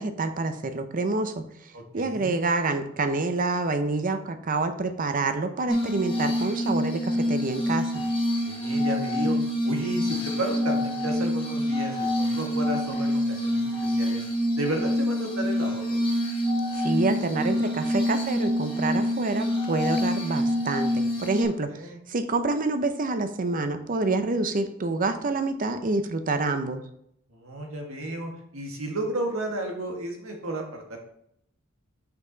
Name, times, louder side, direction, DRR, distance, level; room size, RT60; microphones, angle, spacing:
voice 1, 0.0-8.0 16.7-21.7 22.1-26.8, right 3 dB, 40° right, 9 dB, 0.6 m, -27 dB
voice 2, 1.7-2.3 8.4-9.4 9.6-14.2 14.6-16.0 21.7-22.0 27.3-31.0, right 1 dB, 90° right, 2 dB, 1.5 m, -33 dB
Glass, 5.7-21.4, equal, 25° left, 1.5 m, -26 dB
5.8 x 5.8 x 3.9 m, 0.72 s
head